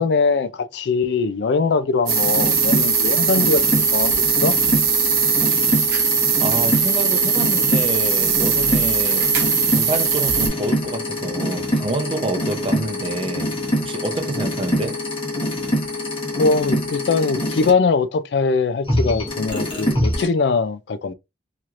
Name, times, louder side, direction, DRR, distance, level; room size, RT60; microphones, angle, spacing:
voice 1, 0.0-4.6 16.4-21.1, left 4 dB, 65° left, 0.4 m, -21 dB
sound 1, 2.1-17.7 18.8-20.3, left 1 dB, 30° left, 1.2 m, -25 dB
sound 2, 2.1-10.5, right 6 dB, 60° right, 0.9 m, -20 dB
voice 2, 5.4-5.7 6.4-9.3 9.7-13.5 13.8-15.0, right 2 dB, 30° right, 0.6 m, -28 dB
3.1 x 2.9 x 2.4 m
head